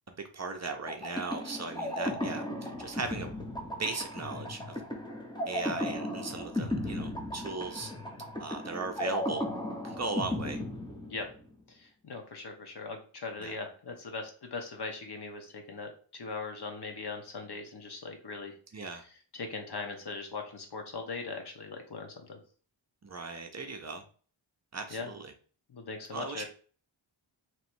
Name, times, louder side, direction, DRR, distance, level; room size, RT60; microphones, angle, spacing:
voice 1, 0.1-3.4 3.8-4.8 5.5-7.9 8.4-9.4 9.8-10.6 13.4-13.5 18.7-19.0 23.0-24.0 24.7-25.3 26.1-26.4, right 3 dB, 35° right, 5 dB, 0.6 m, -38 dB
sound 1, 0.9-11.5, left 1 dB, 10° left, 0.8 m, -36 dB
voice 2, 11.8-18.5 19.3-22.4 24.9-25.1 25.7-26.5, left 4 dB, 55° left, 4 dB, 1.0 m, -40 dB
3.1 x 3.0 x 4.5 m, 0.42 s
wide cardioid pair, 145°, 46 cm